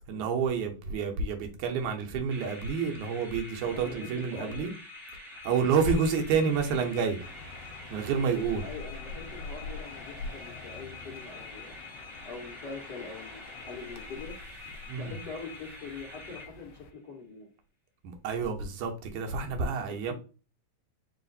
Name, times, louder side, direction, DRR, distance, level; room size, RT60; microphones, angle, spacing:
voice 1, 0.1-4.7 5.4-7.2 7.9-8.6 14.9-15.1 18.0-20.1, right 5 dB, 90° right, 2.3 m, -29 dB
sound 1, 2.3-17.0, left 2 dB, ahead, 0.7 m, -46 dB
voice 2, 3.7-4.7 8.6-11.8 12.2-14.3 14.9-17.5 19.7-19.8 20.0-20.1, left 4 dB, 55° left, 1.2 m, -43 dB
sound 2, 7.2-16.9, left 3 dB, 75° left, 1.6 m, -45 dB
5.0 x 2.5 x 3.9 m
omnidirectional pair, 3.3 m